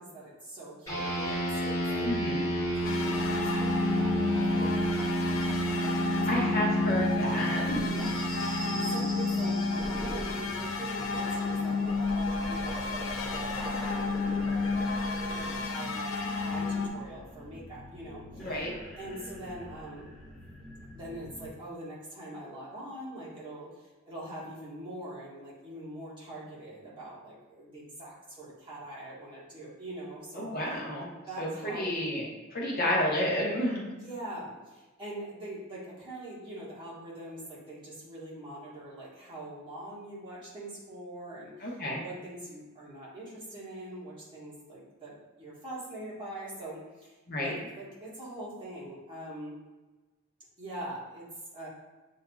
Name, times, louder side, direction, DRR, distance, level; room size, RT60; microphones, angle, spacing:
voice 1, 0.0-2.1 2.7-6.7 7.9-8.1 8.5-14.8 15.1-16.1 16.4-18.5 19.0-20.1 20.9-30.5 31.3-31.9 34.0-47.1 47.4-49.5 50.6-51.3 51.5-51.7, right 1 dB, 25° right, -8 dB, 1.4 m, -43 dB
sound 1, 0.9-10.6, right 1 dB, 15° left, 1.5 m, -31 dB
voice 2, 2.0-2.4 6.3-8.1 18.4-18.7 30.3-31.1 31.4-32.2 32.5-33.9 41.6-42.0 47.3-47.6, left 1 dB, 45° left, -3 dB, 0.9 m, -30 dB
sound 2, 2.8-16.9, left 4 dB, 70° left, 0.5 m, -31 dB
sound 3, 7.7-21.5, equal, ahead, 0.6 m, -43 dB
7.0 x 2.7 x 2.3 m, 1.2 s
head